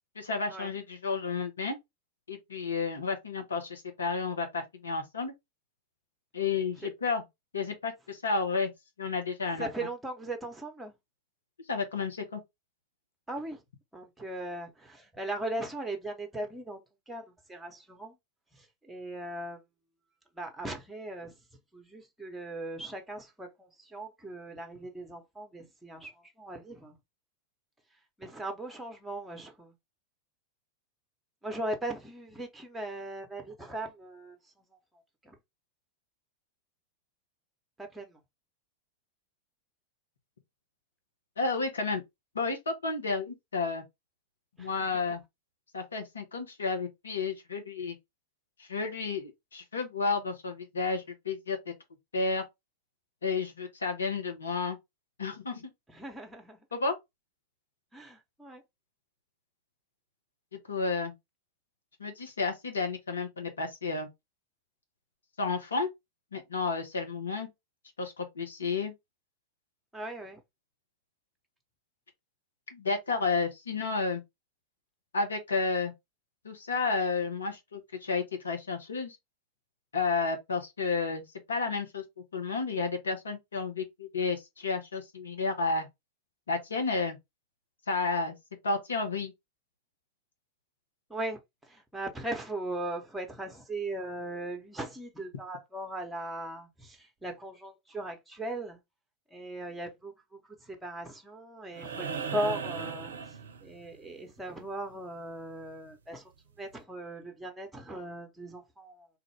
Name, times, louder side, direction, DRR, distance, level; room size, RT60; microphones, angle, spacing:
voice 1, 0.1-1.7 2.3-5.3 6.3-7.2 7.5-8.7 9.0-9.7 11.7-12.4 41.4-42.0 42.3-43.8 44.6-45.2 45.7-48.0 48.6-51.7 52.1-52.4 53.2-54.8 55.2-55.7 56.7-56.9 60.7-61.1 62.0-64.1 65.4-65.9 66.3-67.5 68.0-68.9 72.7-74.2 75.1-75.9 76.4-79.2 79.9-82.0 82.3-85.9 86.5-87.2 87.9-88.3 88.6-89.3, left 4 dB, 80° left, 1.0 m, -31 dB
voice 2, 9.5-10.9 13.3-13.6 13.9-18.2 18.5-19.6 20.3-21.3 21.7-27.0 28.2-29.7 31.4-34.4 35.2-35.4 37.8-38.2 44.6-45.1 55.9-56.6 57.9-58.6 69.9-70.4 91.1-98.8 99.3-106.3 106.6-109.1, right 1 dB, 5° right, 0.9 m, -39 dB
sound 1, 101.7-104.1 105.9-106.0, right 6 dB, 75° right, 0.5 m, -37 dB
3.2 x 2.4 x 3.2 m
figure-of-eight pair, 95°, 0 cm